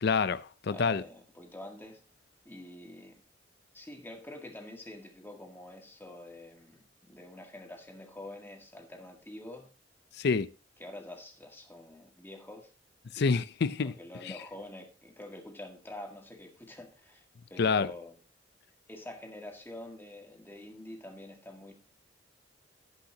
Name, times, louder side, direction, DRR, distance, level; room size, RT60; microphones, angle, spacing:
voice 1, 0.0-1.0 10.2-10.5 13.2-13.9 17.6-17.9, left 5 dB, 60° left, 0.5 m, -27 dB
voice 2, 0.7-2.0 2.4-3.2 3.7-9.7 10.8-12.7 13.8-17.2 17.5-18.2 18.9-21.7, left 1 dB, 10° left, 1.8 m, -46 dB
17.5 x 5.8 x 2.8 m
head